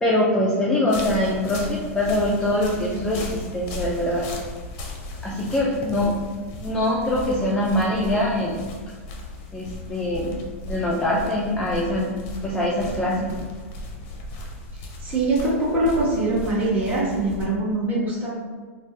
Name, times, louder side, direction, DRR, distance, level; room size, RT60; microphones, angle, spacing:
voice 1, 0.0-4.3 5.2-6.1 6.6-8.7 9.5-10.4 10.7-12.1 12.4-13.3, left 1 dB, 10° left, -5 dB, 0.5 m, -23 dB
sound 1, 0.9-17.4, left 1 dB, 45° left, 0.7 m, -36 dB
voice 2, 15.0-18.3, right 2 dB, 20° right, -9 dB, 1.4 m, -23 dB
3.1 x 2.2 x 2.8 m, 1.5 s
hypercardioid pair, 115°, 8 cm